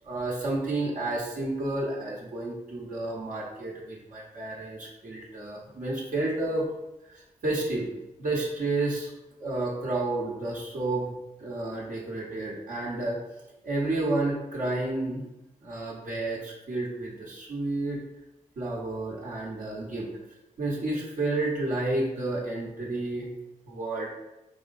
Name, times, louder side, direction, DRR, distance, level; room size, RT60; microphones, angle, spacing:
voice 1, 0.0-6.6 7.1-7.9 8.2-9.1 9.4-13.2 13.6-15.2 15.6-18.0 18.6-20.1 20.6-23.3 23.7-24.1, right 2 dB, 75° right, -6 dB, 1.0 m, -31 dB
3.9 x 3.5 x 2.6 m, 0.96 s
cardioid pair, 65°, 14 cm